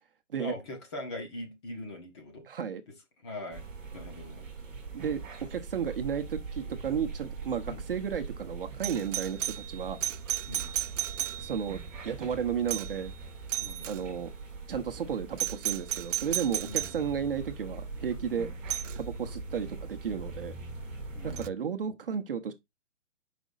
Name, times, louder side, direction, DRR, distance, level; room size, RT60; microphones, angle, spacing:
voice 1, 0.4-2.4 3.2-3.7 3.9-4.5 7.7-7.8 10.5-10.8 13.6-13.9 16.6-17.0 21.1-21.5, left 1 dB, 20° left, 1.3 m, -41 dB
voice 2, 2.5-2.8 4.9-5.2 5.5-10.0 11.4-11.8 12.0-13.1 13.8-14.3 14.7-18.5 19.0-20.6 21.2-22.5, right 7 dB, 45° right, 0.9 m, -33 dB
sound 1, 3.5-21.5, right 4 dB, 5° right, 0.8 m, -42 dB
Doorbell, 8.8-11.8 12.7-13.1 13.5-14.0 15.4-17.0 18.7-19.0 21.4-21.5, right 11 dB, 75° right, 0.5 m, -34 dB
6.1 x 5.1 x 3.9 m
hypercardioid pair, 170°, 37 cm